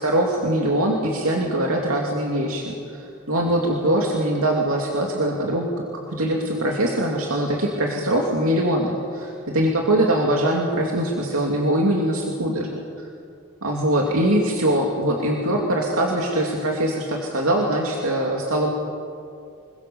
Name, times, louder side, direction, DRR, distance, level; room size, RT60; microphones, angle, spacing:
voice 1, 0.0-5.7 6.1-12.7 13.0-13.1 13.6-18.7, right 1 dB, 90° right, -1 dB, 2.7 m, -22 dB
27.0 x 21.5 x 7.1 m, 2.4 s
head